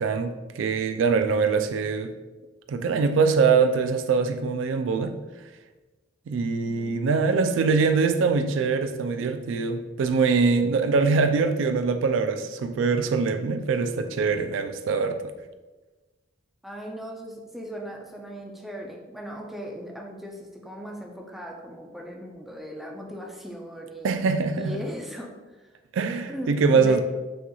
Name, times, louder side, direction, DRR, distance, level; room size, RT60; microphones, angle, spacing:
voice 1, 0.0-2.1 2.7-5.2 6.3-15.2 24.0-24.8 25.9-27.0, right 4 dB, 85° right, 0.3 m, -23 dB
voice 2, 6.6-7.0 16.6-24.3 24.6-25.7 26.3-27.0, equal, ahead, 0.5 m, -38 dB
6.3 x 2.9 x 2.3 m
head